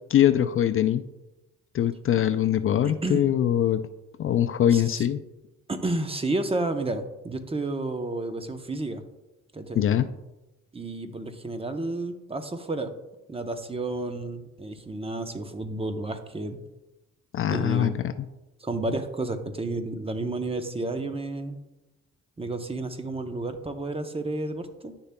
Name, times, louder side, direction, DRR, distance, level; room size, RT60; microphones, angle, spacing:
voice 1, 0.1-1.0 1.7-3.8 4.2-5.2 9.8-10.1 17.3-18.1, left 10 dB, 45° left, 10 dB, 0.4 m, -22 dB
voice 2, 2.8-3.3 4.7-5.1 5.7-9.0 9.5-9.8 10.7-12.9 13.3-16.6 17.5-18.0 18.6-21.6 22.4-24.9, right 2 dB, 20° right, 7 dB, 0.7 m, -31 dB
9.9 x 6.6 x 2.2 m, 0.98 s
cardioid pair, 90°, 30 cm